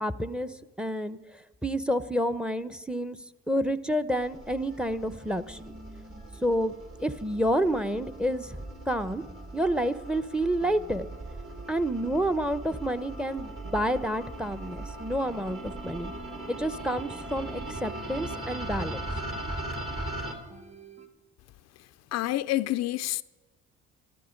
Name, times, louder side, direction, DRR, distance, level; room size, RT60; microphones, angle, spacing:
voice 1, 0.0-1.2 1.6-3.2 3.5-5.8 6.4-6.7 7.0-8.6 8.9-9.2 9.5-11.1 11.7-16.1 16.5-19.0, equal, 5° right, 0.7 m, -29 dB
sound 1, 4.1-20.3, right 2 dB, 45° right, 3.3 m, -39 dB
sound 2, 4.7-21.1, left 1 dB, 25° right, 1.7 m, -51 dB
voice 2, 22.1-23.2, left 15 dB, 60° left, 0.4 m, -28 dB
14.0 x 12.5 x 5.2 m
supercardioid pair, 65°, 30 cm